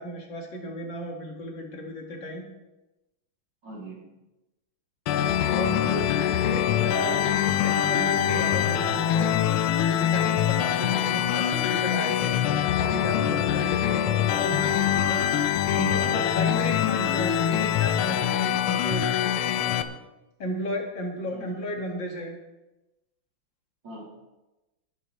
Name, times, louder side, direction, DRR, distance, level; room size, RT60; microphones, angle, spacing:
voice 1, 0.0-2.5 5.4-6.1 6.4-9.6 9.9-12.4 12.7-15.4 15.7-19.1 19.7-20.0 20.4-22.4, equal, 60° left, 0 dB, 2.7 m, -34 dB
voice 2, 3.6-4.2 5.6-6.0 10.8-11.2 13.5-13.8 21.2-21.5 23.8-24.1, right 1 dB, 55° right, -5 dB, 4.0 m, -42 dB
sound 1, 5.1-19.8, left 10 dB, 85° left, 1.7 m, -24 dB
19.0 x 11.0 x 3.2 m, 1.0 s
omnidirectional pair, 2.3 m